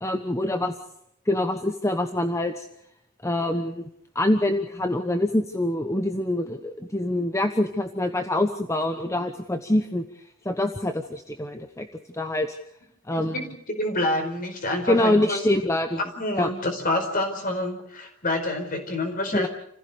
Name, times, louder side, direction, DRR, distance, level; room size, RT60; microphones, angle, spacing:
voice 1, 0.0-0.7 1.3-2.7 3.2-3.9 4.1-10.0 10.4-11.9 12.1-12.6 13.1-13.4 14.9-16.0 16.4-16.5 19.3-19.5, left 1 dB, 15° left, 7 dB, 1.0 m, -25 dB
voice 2, 13.1-15.4 16.0-19.5, left 1 dB, 40° left, 5 dB, 4.7 m, -27 dB
29.0 x 16.0 x 6.9 m, 0.74 s
head